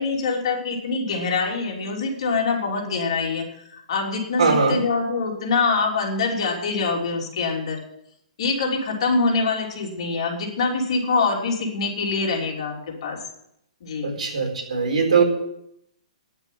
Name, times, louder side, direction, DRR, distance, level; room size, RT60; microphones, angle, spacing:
voice 1, 0.0-7.8 8.4-13.2 13.8-14.1, left 4 dB, 45° left, 0 dB, 3.2 m, -24 dB
voice 2, 4.4-4.8 14.0-15.2, right 5 dB, 70° right, 2 dB, 4.1 m, -20 dB
9.8 x 8.1 x 9.3 m, 0.76 s
hypercardioid pair, 170°, 4 cm